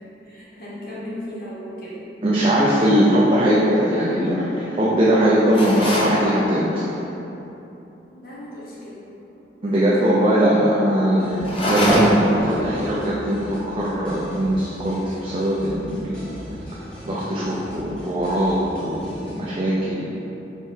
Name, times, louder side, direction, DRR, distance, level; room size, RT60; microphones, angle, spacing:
voice 1, 0.0-2.1 3.0-3.1 8.1-9.1 9.6-10.2, left 1 dB, 55° left, -8 dB, 1.1 m, -37 dB
voice 2, 2.2-6.9 9.6-16.3 17.0-20.1, equal, 30° right, -7 dB, 0.5 m, -20 dB
sound 1, 5.5-6.2 11.4-12.4, equal, 30° left, 0.6 m, -21 dB
sound 2, 11.2-19.5, equal, 5° left, 1.2 m, -40 dB
3.6 x 3.4 x 4.4 m, 3.0 s
head